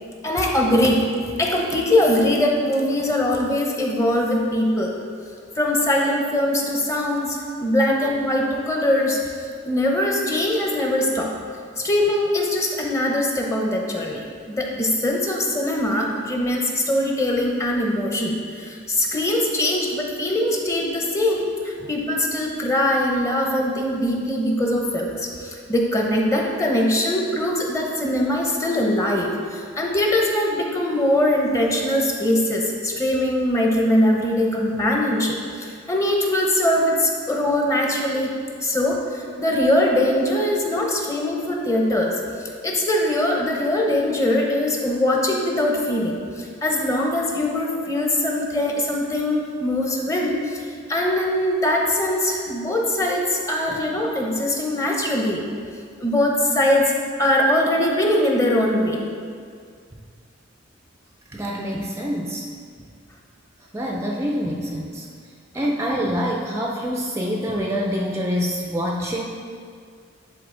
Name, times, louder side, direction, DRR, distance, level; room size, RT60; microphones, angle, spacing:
voice 1, 0.2-1.0 1.4-4.9 5.5-11.3 11.8-38.3 38.6-55.4 56.0-56.9 57.2-59.1, left 1 dB, 15° left, 0 dB, 0.8 m, -22 dB
voice 2, 61.3-62.5 63.7-65.1 65.5-69.2, equal, 15° right, -1 dB, 0.4 m, -26 dB
10.0 x 4.0 x 3.8 m, 2.1 s
head